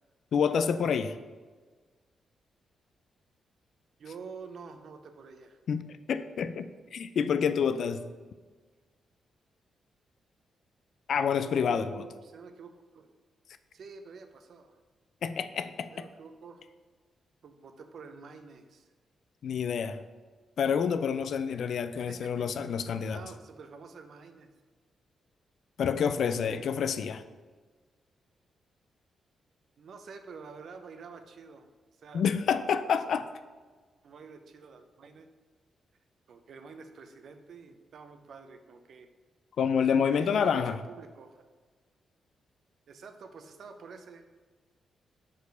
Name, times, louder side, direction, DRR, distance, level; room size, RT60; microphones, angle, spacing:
voice 1, 0.3-1.2 5.7-8.0 11.1-12.0 15.2-16.1 19.4-20.0 20.6-23.2 25.8-27.2 32.1-33.3 39.6-40.8, left 7 dB, 70° left, 11 dB, 0.3 m, -28 dB
voice 2, 4.0-5.6 11.6-13.1 13.7-14.8 15.9-16.6 17.4-18.9 21.9-22.7 23.1-24.5 26.2-26.4 29.8-31.7 32.0-32.2 32.9-33.0 34.0-35.3 36.3-39.1 40.1-41.4 42.9-44.3, right 5 dB, 70° right, 7 dB, 0.6 m, -48 dB
4.9 x 4.6 x 5.1 m, 1.4 s
supercardioid pair, 55°, 0 cm